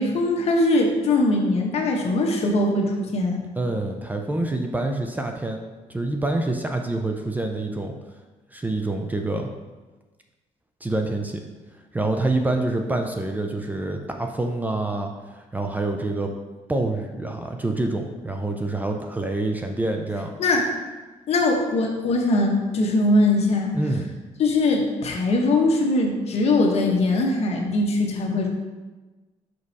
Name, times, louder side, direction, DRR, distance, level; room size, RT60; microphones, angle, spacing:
voice 1, 0.0-3.4 20.4-20.7 21.3-23.7 24.4-28.5, left 2 dB, 55° left, 1 dB, 1.2 m, -21 dB
voice 2, 3.6-5.6 5.9-7.9 8.5-9.5 10.8-11.4 11.9-16.3 16.7-20.3 23.7-24.1, right 2 dB, 15° right, 3 dB, 0.5 m, -26 dB
6.0 x 5.2 x 4.1 m, 1.2 s
cardioid pair, 130°, 13 cm